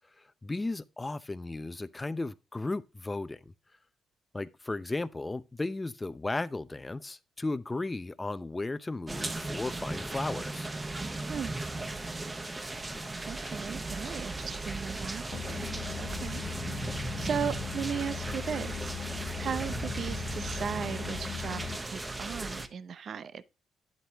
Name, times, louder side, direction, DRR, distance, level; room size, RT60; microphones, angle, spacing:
voice 1, 0.0-3.5 4.3-10.7, left 2 dB, 20° left, 0.6 m, -35 dB
sound 1, 9.1-22.7, right 2 dB, 20° right, 1.0 m, -37 dB
voice 2, 13.3-16.4 16.7-19.0 19.4-23.4, right 7 dB, 55° right, 0.6 m, -37 dB
sound 2, 15.3-21.8, left 9 dB, 65° left, 0.4 m, -39 dB
10.0 x 7.9 x 3.0 m
cardioid pair, 90°, 0 cm